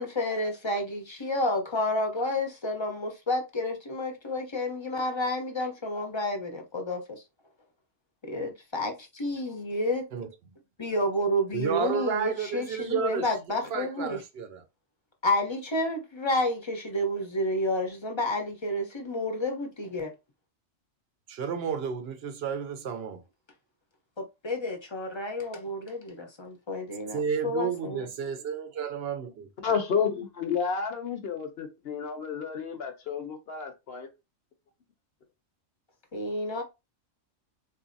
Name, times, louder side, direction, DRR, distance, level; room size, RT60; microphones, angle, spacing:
voice 1, 0.0-7.2 8.2-10.1 10.8-14.2 15.2-20.1 24.2-28.1 36.1-36.6, left 1 dB, 30° left, 0.6 m, -30 dB
voice 2, 11.5-13.3 13.7-14.6 21.3-23.2 27.1-29.5, right 7 dB, 60° right, 0.7 m, -31 dB
voice 3, 29.6-34.1, left 6 dB, 55° left, 0.9 m, -31 dB
3.9 x 2.6 x 2.5 m
omnidirectional pair, 1.4 m